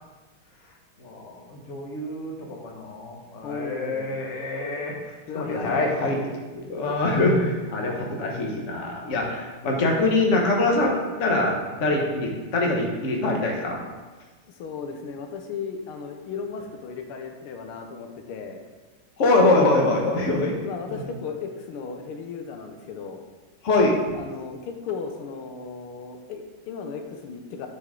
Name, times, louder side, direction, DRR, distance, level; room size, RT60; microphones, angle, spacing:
voice 1, 1.0-4.9 5.3-6.2 6.5-13.8 19.2-20.5 23.6-24.0, left 2 dB, 40° left, 0 dB, 1.3 m, -24 dB
voice 2, 3.4-4.2 5.3-6.2 14.5-18.6 20.6-23.2 24.1-27.7, left 5 dB, 90° left, 4 dB, 1.7 m, -35 dB
9.4 x 5.3 x 3.8 m, 1.3 s
omnidirectional pair, 2.4 m